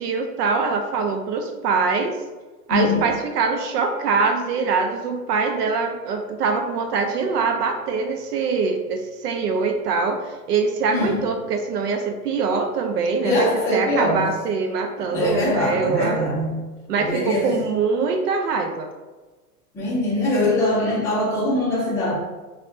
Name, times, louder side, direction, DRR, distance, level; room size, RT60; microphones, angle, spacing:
voice 1, 0.0-2.2 2.7-16.2 16.9-18.9, right 4 dB, 75° right, 5 dB, 0.6 m, -23 dB
voice 2, 2.7-3.0 10.9-11.2 13.2-14.2 15.1-16.6 17.0-17.6 19.7-22.1, left 1 dB, 5° left, -6 dB, 0.4 m, -22 dB
5.3 x 2.3 x 2.6 m, 1.2 s
hypercardioid pair, 125°, 48 cm